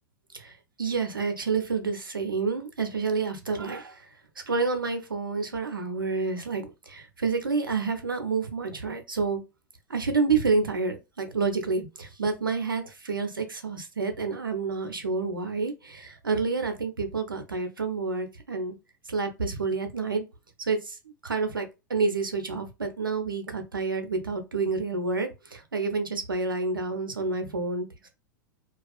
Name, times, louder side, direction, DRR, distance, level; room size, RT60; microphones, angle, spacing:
voice 1, 0.8-4.0 4.5-9.4 9.9-18.7 19.1-20.2 20.7-20.8 21.2-28.1, right 4 dB, 85° right, 0.6 m, -29 dB
2.4 x 2.3 x 2.4 m
figure-of-eight pair, 95°, 11 cm